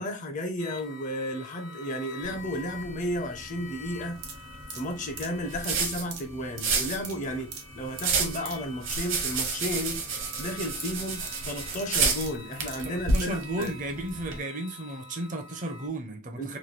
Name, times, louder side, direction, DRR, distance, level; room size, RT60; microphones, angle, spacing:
voice 1, 0.0-4.2 4.7-13.7 16.4-16.6, equal, 35° left, 0.5 m, -33 dB
sound 1, 0.6-15.9, left 3 dB, 75° left, 0.9 m, -47 dB
Light Turned On, 2.2-14.4, right 4 dB, 60° right, 0.8 m, -32 dB
sound 2, 4.1-13.8 14.1-14.2, right 6 dB, 90° right, 0.9 m, -44 dB
voice 2, 12.8-16.6, right 1 dB, 35° right, 0.5 m, -34 dB
3.0 x 2.2 x 3.1 m
head